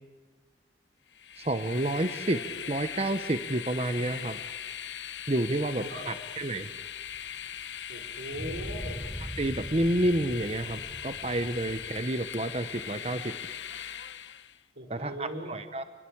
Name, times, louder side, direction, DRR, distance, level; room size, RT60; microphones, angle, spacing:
Train, 1.1-14.6, left 9 dB, 85° left, 1.0 m, -40 dB
voice 1, 1.4-4.4 5.3-6.7 9.4-13.4 14.9-15.8, right 1 dB, 35° right, 10 dB, 0.9 m, -30 dB
voice 2, 5.8-6.1 7.9-9.1 14.7-15.6, equal, 85° right, 6 dB, 4.6 m, -39 dB
sound 1, 7.1-7.2 8.3-12.1, equal, 10° right, 0.8 m, -41 dB
28.5 x 21.5 x 8.7 m, 1.3 s
head